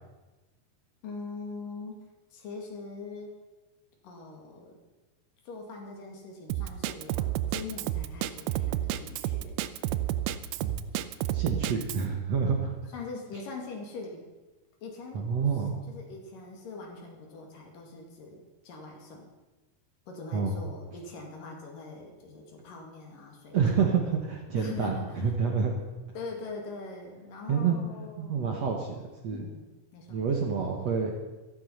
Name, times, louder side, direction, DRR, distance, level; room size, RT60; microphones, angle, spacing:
voice 1, 1.0-3.4 4.0-4.8 5.5-9.6 11.5-11.8 12.9-14.3 14.8-15.5 15.9-19.2 20.1-23.6 24.6-25.3 26.1-28.8 29.3-30.7, left 4 dB, 65° left, 1 dB, 3.8 m, -42 dB
Drum kit, 6.5-12.1, right 13 dB, 90° right, 2.6 m, -30 dB
voice 2, 11.3-12.7 15.1-15.8 20.3-20.6 23.5-25.7 27.5-27.8 28.2-29.4 30.1-31.1, right 6 dB, 55° right, 2 dB, 2.1 m, -28 dB
15.5 x 12.5 x 5.6 m, 1.1 s
omnidirectional pair, 4.4 m